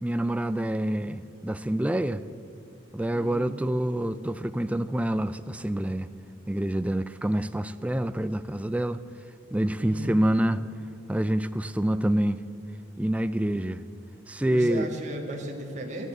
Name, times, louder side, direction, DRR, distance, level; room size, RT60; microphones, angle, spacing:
voice 1, 0.0-2.2 2.9-6.1 6.5-9.0 9.5-10.6 11.1-12.4 13.0-13.8 14.3-14.9, right 1 dB, 5° right, 12 dB, 0.3 m, -27 dB
voice 2, 3.1-3.6 9.8-10.2 14.5-16.1, right 1 dB, 35° right, 1 dB, 1.7 m, -36 dB
13.0 x 12.0 x 8.2 m, 2.5 s
head